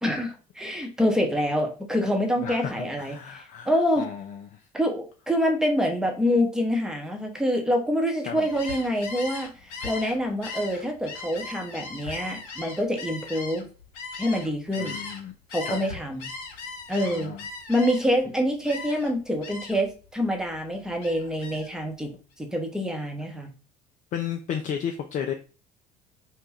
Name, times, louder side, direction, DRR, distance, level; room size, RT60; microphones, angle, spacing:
voice 1, 0.0-4.0 4.7-13.6 14.2-15.0 15.5-16.3 16.9-17.3 17.7-22.1 22.4-23.5, equal, 5° right, 2 dB, 0.8 m, -26 dB
voice 2, 2.4-4.6 8.2-8.5 14.8-15.3 15.6-15.8 17.0-17.4 24.1-25.3, left 8 dB, 40° left, 4 dB, 0.4 m, -33 dB
Gull seagull, 8.4-15.2 15.5-18.2 18.6-19.1 19.4-19.9 20.3-21.7, left 4 dB, 65° left, 0.7 m, -38 dB
2.6 x 2.2 x 3.2 m, 0.35 s
figure-of-eight pair, 60°, 21 cm